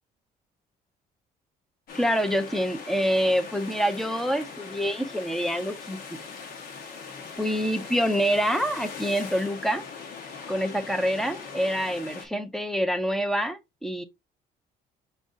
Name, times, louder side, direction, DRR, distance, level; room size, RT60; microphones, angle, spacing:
sound 1, 1.9-12.3, left 5 dB, 65° left, 1.2 m, -41 dB
voice 1, 1.9-6.2 7.4-9.8 10.5-14.0, equal, ahead, 0.7 m, -26 dB
5.3 x 3.4 x 2.6 m
cardioid pair, 110°, 17 cm